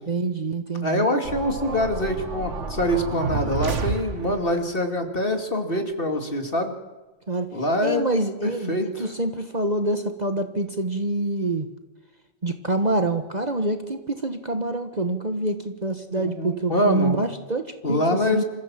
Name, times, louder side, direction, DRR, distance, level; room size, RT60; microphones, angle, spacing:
voice 1, 0.1-1.1 7.3-7.5 7.8-11.7 12.4-18.4, right 2 dB, 35° right, 7 dB, 1.3 m, -26 dB
voice 2, 0.8-6.8 7.5-8.0 8.4-9.1 16.1-17.2 17.8-18.4, left 1 dB, 40° left, 5 dB, 2.6 m, -25 dB
sound 1, 1.2-4.6, right 4 dB, 60° right, 1.8 m, -30 dB
27.0 x 15.0 x 7.5 m, 1.2 s
omnidirectional pair, 1.4 m